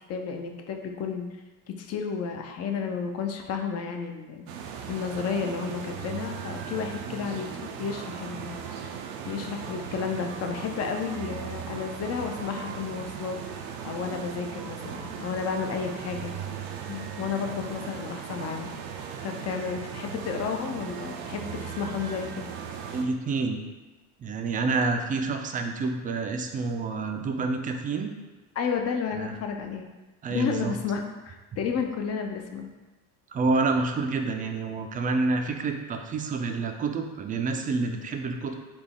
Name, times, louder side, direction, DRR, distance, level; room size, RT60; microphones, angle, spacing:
voice 1, 0.1-1.3 1.7-4.5 4.9-7.5 7.8-8.6 9.2-13.4 13.8-16.3 16.9-18.7 19.2-22.4 28.6-29.9 30.3-32.7, left 6 dB, 45° left, 4 dB, 0.5 m, -32 dB
sound 1, 4.5-23.0, right 7 dB, 90° right, 0.5 m, -38 dB
voice 2, 22.9-23.6 24.2-28.1 29.2-29.3 30.2-30.7 33.3-38.5, right 3 dB, 25° right, 5 dB, 0.3 m, -28 dB
4.1 x 2.3 x 3.5 m, 1.2 s
supercardioid pair, 105°, 36 cm